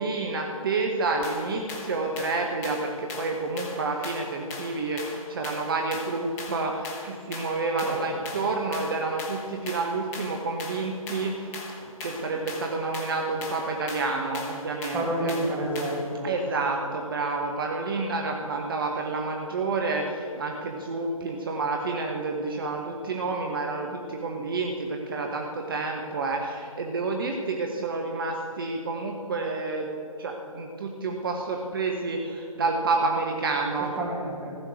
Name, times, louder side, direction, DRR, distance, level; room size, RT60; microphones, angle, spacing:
voice 1, 0.0-15.3 16.2-29.9 30.2-33.9, right 3 dB, 40° right, 2 dB, 1.1 m, -29 dB
sound 1, 1.2-16.1, left 3 dB, 15° left, 1.0 m, -40 dB
voice 2, 14.9-16.3 33.8-34.6, right 1 dB, 10° right, -4 dB, 2.0 m, -29 dB
15.0 x 6.4 x 7.8 m, 2.6 s
figure-of-eight pair, 140°, 18 cm